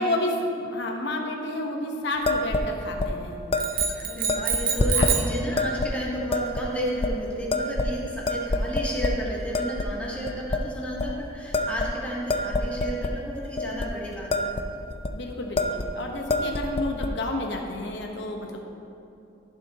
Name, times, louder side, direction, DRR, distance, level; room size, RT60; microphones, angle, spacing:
voice 1, 0.0-3.4 5.0-5.2 15.1-18.6, left 1 dB, 65° left, 2 dB, 1.1 m, -30 dB
sound 1, 2.3-2.7 3.0-3.1 3.5-3.9 4.3-5.1 5.6-5.9 6.3-6.6 7.0-7.1 7.5-8.0 8.3-9.2 9.5-9.9 10.3-10.6 11.0-11.1 11.5-13.1 13.6-13.9 14.1-14.6 14.9-15.1 15.6-15.9 16.2-17.1, left 2 dB, 30° left, 0.5 m, -26 dB
sound 2, 3.6-5.4, right 7 dB, 50° right, 0.8 m, -27 dB
voice 2, 4.0-14.5, equal, 10° left, -6 dB, 1.8 m, -32 dB
14.0 x 7.0 x 2.9 m, 2.8 s
head